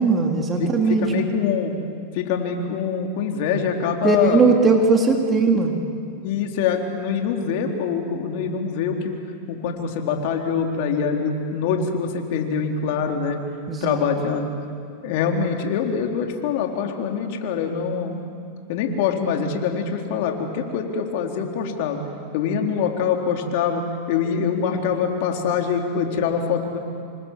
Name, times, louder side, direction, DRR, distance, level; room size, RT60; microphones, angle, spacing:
voice 1, 0.0-1.1 4.0-5.8 13.7-14.0, right 4 dB, 25° right, 2 dB, 3.3 m, -19 dB
voice 2, 0.6-1.7 2.1-4.4 6.2-9.2 9.5-13.4 13.8-14.5 15.0-18.2 18.7-22.0 22.3-26.8, left 6 dB, 60° left, 2 dB, 3.8 m, -24 dB
27.0 x 25.5 x 7.4 m, 2.3 s
hypercardioid pair, 110°, 0 cm